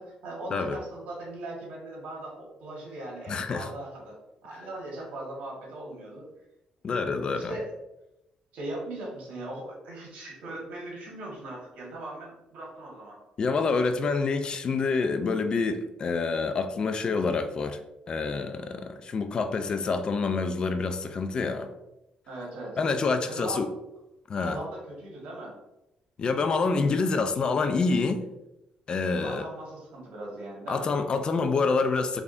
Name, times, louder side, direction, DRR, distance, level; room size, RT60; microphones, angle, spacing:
voice 1, 0.0-4.2 4.4-6.2 7.2-7.7 8.5-13.2 22.3-22.8 23.3-23.6 24.4-25.5 29.1-30.9, right 2 dB, 85° right, -2 dB, 1.3 m, -39 dB
voice 2, 3.3-3.7 4.5-4.7 6.8-7.6 13.4-17.8 18.1-21.7 22.8-23.7 24.3-24.6 26.2-28.2 28.9-29.4 30.7-32.2, left 4 dB, 40° left, 8 dB, 0.3 m, -27 dB
3.5 x 3.3 x 2.5 m, 0.90 s
cardioid pair, 135°, 2 cm